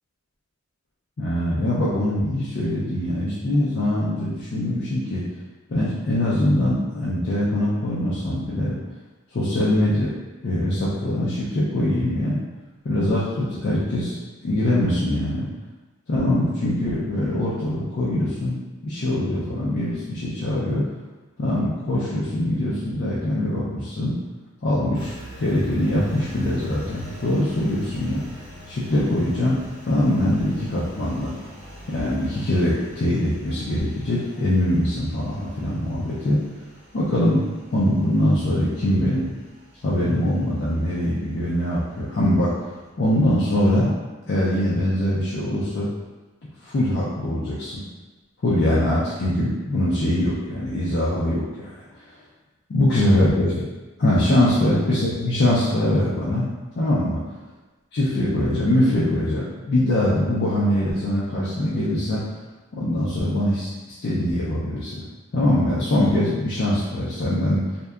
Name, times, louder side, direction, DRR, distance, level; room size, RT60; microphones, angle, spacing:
voice 1, 1.2-5.2 5.7-8.8 9.3-10.1 10.4-12.4 12.8-14.2 14.4-15.5 16.1-18.6 18.8-20.9 21.4-24.2 24.6-28.2 28.7-29.6 29.9-31.3 31.9-36.4 36.9-37.4 37.7-39.3 39.8-42.5 43.0-44.0 44.3-45.9 46.6-47.8 48.4-52.0 52.7-53.6 54.0-56.5 56.8-57.2 57.9-62.2 62.7-65.0 65.3-67.6, left 1 dB, 50° left, -8 dB, 0.4 m, -22 dB
Engine, 24.9-42.9, equal, 35° right, 0.9 m, -44 dB
2.6 x 2.1 x 2.3 m, 1.2 s
head